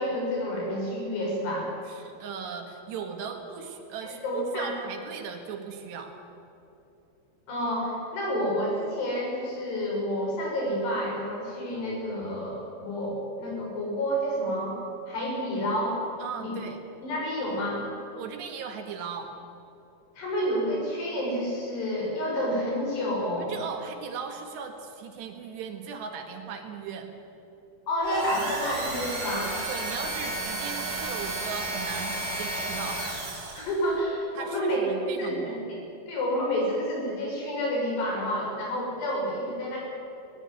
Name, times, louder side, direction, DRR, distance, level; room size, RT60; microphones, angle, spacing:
voice 1, 0.0-1.7 4.0-4.7 7.5-14.8 15.1-16.0 16.4-16.6 17.0-17.8 20.2-23.6 27.9-29.5 33.5-35.8 36.1-39.8, equal, 65° left, -2 dB, 8.6 m, -29 dB
voice 2, 1.9-6.1 16.2-16.8 18.1-19.3 23.4-27.1 29.7-33.5 34.3-35.6, right 6 dB, 70° right, 4 dB, 3.7 m, -38 dB
sound 1, 28.0-33.8, right 2 dB, 45° right, 5.9 m, -32 dB
20.5 x 18.0 x 9.3 m, 2.9 s
omnidirectional pair, 5.3 m